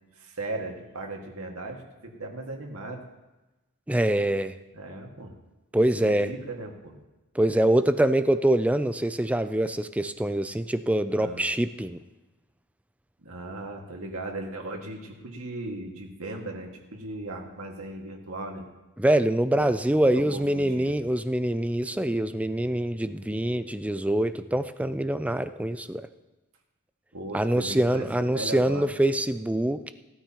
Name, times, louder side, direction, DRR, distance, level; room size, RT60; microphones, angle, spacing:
voice 1, 0.2-3.0 4.7-5.4 6.0-7.0 11.2-11.5 13.2-18.6 19.6-21.0 27.1-28.9, right 2 dB, 70° right, 1 dB, 1.9 m, -37 dB
voice 2, 3.9-4.5 5.7-6.3 7.4-12.0 19.0-26.1 27.3-29.9, right 1 dB, 5° right, 11 dB, 0.4 m, -24 dB
18.0 x 13.0 x 2.9 m, 1.1 s
head